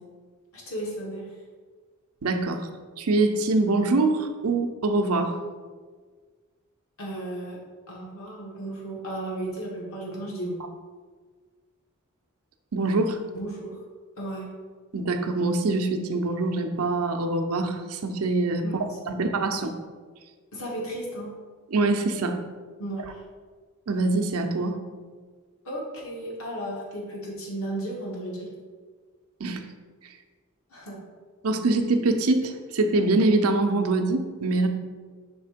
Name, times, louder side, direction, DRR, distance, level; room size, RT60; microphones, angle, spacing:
voice 1, 0.5-1.3 7.0-7.6 7.9-10.6 13.3-13.8 14.2-14.5 18.6-18.9 20.5-21.3 22.8-23.2 25.6-28.5 30.7-31.0, right 1 dB, 70° left, -3 dB, 1.7 m, -34 dB
voice 2, 2.2-2.7 3.0-5.4 12.7-13.2 14.9-18.6 19.1-19.7 21.7-22.4 23.9-24.8 29.4-29.6 31.4-34.7, right 2 dB, 85° right, 6 dB, 0.6 m, -24 dB
5.2 x 3.6 x 5.0 m, 1.5 s
head